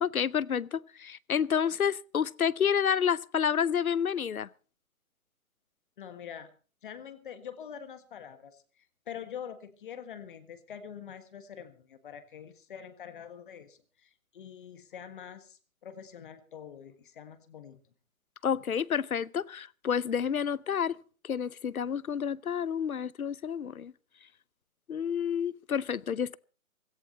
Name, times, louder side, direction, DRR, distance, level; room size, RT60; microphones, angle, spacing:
voice 1, 0.0-4.5 18.4-21.0 21.2-23.9 24.9-26.4, left 7 dB, 85° left, 0.8 m, -29 dB
voice 2, 6.0-6.5 6.8-17.8, left 8 dB, 35° left, 1.5 m, -45 dB
16.5 x 15.5 x 4.1 m
figure-of-eight pair, 150°, 42 cm